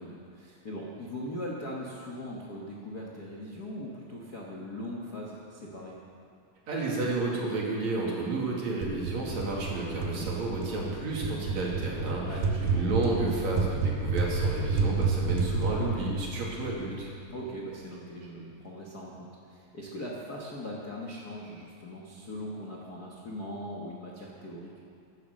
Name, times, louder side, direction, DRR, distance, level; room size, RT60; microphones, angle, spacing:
voice 1, 0.0-5.9 10.0-10.3 12.3-12.6 17.3-24.7, left 1 dB, 60° left, -3 dB, 1.0 m, -40 dB
voice 2, 6.7-17.1, right 2 dB, 50° right, -3 dB, 3.6 m, -31 dB
sound 1, 8.8-17.5, right 4 dB, 85° right, 3.6 m, -30 dB
15.0 x 12.0 x 6.5 m, 2.3 s
omnidirectional pair, 4.2 m